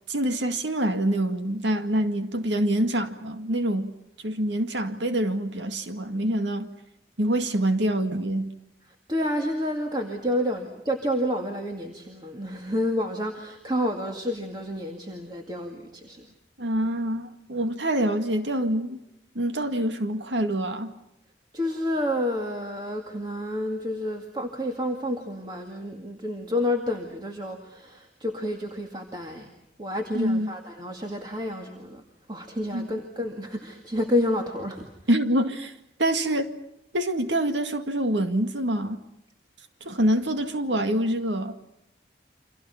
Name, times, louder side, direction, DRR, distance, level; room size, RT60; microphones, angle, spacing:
voice 1, 0.1-3.9 4.2-6.7 7.2-8.5 16.6-19.0 19.4-20.9 30.1-30.5 32.7-32.9 35.1-35.7 36.0-36.5 36.9-39.0 39.8-41.6, right 1 dB, 80° right, 2.0 m, -25 dB
voice 2, 9.1-16.3 21.5-29.5 29.8-32.0 32.3-34.9, left 1 dB, 25° right, 2.1 m, -29 dB
30.0 x 26.0 x 5.8 m
head